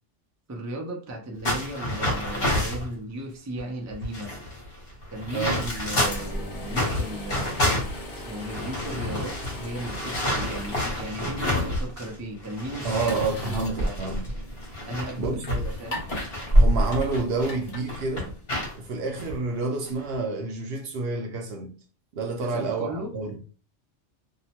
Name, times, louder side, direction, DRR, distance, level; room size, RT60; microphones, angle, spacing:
voice 1, 0.5-4.3 5.1-7.8 8.1-13.1 13.8-14.0 14.8-16.1 22.4-23.1, right 1 dB, 25° right, 0.4 m, -36 dB
sound 1, 1.4-2.9 3.6-3.7 3.9-6.3 6.7-12.1 12.4-17.5 17.9-18.7 19.2-19.3 19.9-20.1, left 1 dB, 55° left, 1.2 m, -29 dB
sound 2, 6.0-18.6, equal, 40° left, 0.6 m, -30 dB
voice 2, 12.8-14.2 15.2-15.4 16.5-18.3 18.7-21.7 22.1-23.4, right 3 dB, 65° right, 0.8 m, -29 dB
2.7 x 2.1 x 2.8 m
omnidirectional pair, 1.2 m